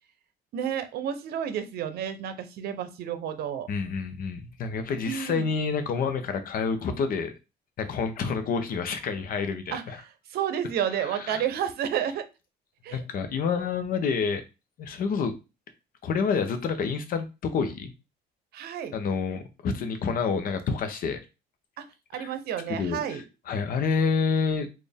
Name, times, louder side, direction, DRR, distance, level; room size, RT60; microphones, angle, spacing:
voice 1, 0.5-3.7 5.0-5.5 9.7-12.3 12.8-13.0 18.5-18.9 21.8-21.9 22.1-23.2, right 9 dB, 70° right, 0.7 m, -31 dB
voice 2, 3.7-7.3 7.8-10.0 11.0-11.4 12.9-14.4 14.8-15.3 16.0-17.9 18.9-21.2 22.1-22.3 22.7-24.7, left 5 dB, 55° left, 0.8 m, -28 dB
4.2 x 2.5 x 3.5 m
cardioid pair, 110°, 17 cm